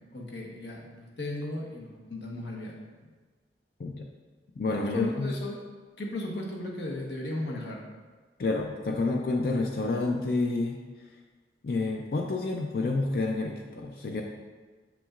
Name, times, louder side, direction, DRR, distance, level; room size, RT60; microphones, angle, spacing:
voice 1, 0.1-3.1 4.9-5.6 6.0-7.8, left 1 dB, 80° left, -1 dB, 1.1 m, -36 dB
voice 2, 4.6-5.3 8.4-10.8 11.6-14.2, left 3 dB, 55° left, 1 dB, 0.4 m, -29 dB
7.1 x 5.8 x 2.5 m, 1.3 s
head